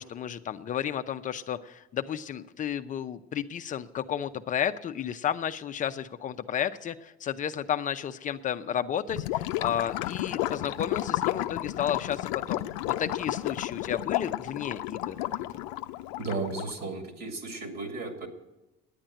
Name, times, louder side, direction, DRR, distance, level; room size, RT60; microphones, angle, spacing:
voice 1, 0.0-15.3, left 9 dB, 40° left, 10 dB, 0.6 m, -32 dB
Gurgling / Liquid, 9.1-16.8, left 16 dB, 90° left, 0.5 m, -32 dB
voice 2, 16.2-18.3, right 3 dB, 50° right, 5 dB, 2.4 m, -34 dB
10.0 x 9.0 x 8.8 m, 0.98 s
supercardioid pair, 105°, 21 cm